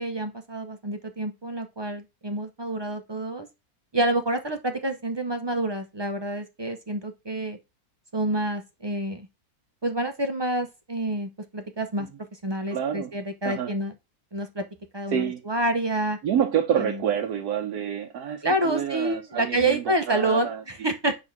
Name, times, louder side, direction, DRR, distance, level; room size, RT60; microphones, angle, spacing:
voice 1, 0.0-3.5 3.9-7.6 8.1-9.3 9.8-12.1 12.4-13.9 14.3-14.6 14.9-16.2 16.8-16.9 18.4-21.2, right 1 dB, 35° right, 0.4 m, -28 dB
voice 2, 12.7-13.1 13.4-13.7 15.1-15.4 16.2-20.6, right 8 dB, 85° right, 1.4 m, -28 dB
8.7 x 3.3 x 5.9 m
omnidirectional pair, 1.6 m